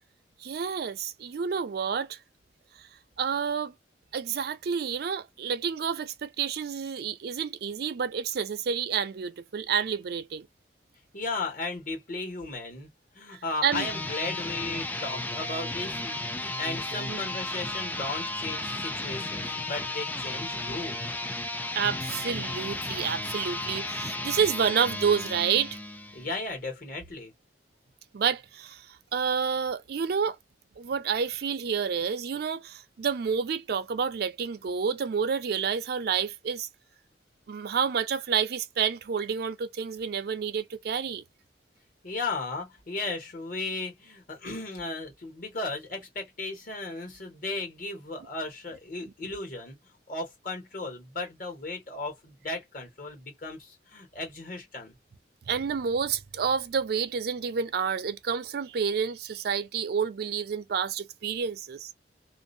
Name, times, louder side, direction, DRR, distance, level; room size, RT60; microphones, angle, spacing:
voice 1, 0.4-2.2 3.2-3.7 4.1-10.5 13.3-13.9 16.9-17.2 21.7-25.8 28.1-28.8 29.1-30.4 30.8-36.7 37.5-41.2 55.5-61.9, right 6 dB, 60° right, 0.4 m, -29 dB
voice 2, 11.1-12.9 13.1-21.0 26.1-27.3 42.0-49.8 50.1-54.9, left 3 dB, 50° left, 1.3 m, -35 dB
sound 1, 13.6-26.4, left 2 dB, 10° left, 0.3 m, -34 dB
2.6 x 2.0 x 2.5 m
head